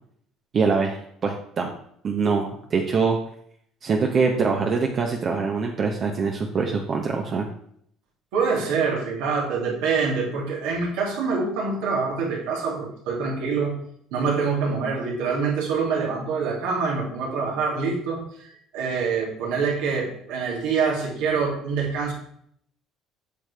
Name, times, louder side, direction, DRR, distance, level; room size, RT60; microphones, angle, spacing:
voice 1, 0.5-1.7 2.0-3.2 3.8-7.5, right 5 dB, 40° right, 2 dB, 0.9 m, -24 dB
voice 2, 8.3-13.8 14.1-22.1, right 5 dB, 85° right, -3 dB, 2.5 m, -25 dB
8.5 x 6.3 x 3.4 m, 0.66 s
cardioid pair, 105°, 0 cm